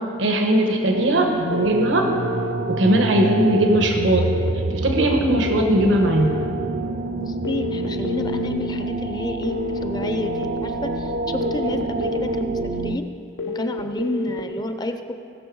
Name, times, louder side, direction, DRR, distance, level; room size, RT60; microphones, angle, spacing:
voice 1, 0.2-2.1 2.7-4.3 4.7-6.3, right 1 dB, 85° right, 2 dB, 1.2 m, -19 dB
sound 1, 0.9-13.0, right 2 dB, 50° right, 0.5 m, -27 dB
sound 2, 1.5-2.5 3.5-4.5 5.5-6.5 7.4-8.5 9.4-10.4 11.4-12.4 13.4-14.4, left 4 dB, 85° left, 0.8 m, -29 dB
voice 2, 7.2-12.5 12.8-13.1 13.5-15.1, left 1 dB, 20° left, 7 dB, 0.5 m, -30 dB
19.5 x 6.9 x 4.7 m, 2.4 s
head